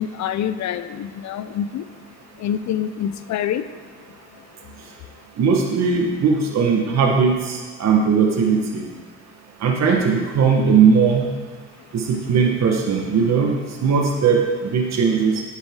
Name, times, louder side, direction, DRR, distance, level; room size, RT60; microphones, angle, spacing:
voice 1, 0.0-1.9 2.4-3.7 4.3-4.4, left 9 dB, 65° left, 12 dB, 0.6 m, -26 dB
voice 2, 5.4-8.9 9.6-11.3 11.9-15.4, right 5 dB, 60° right, 0 dB, 1.4 m, -19 dB
9.8 x 7.5 x 3.7 m, 1.5 s
cardioid pair, 90°, 30 cm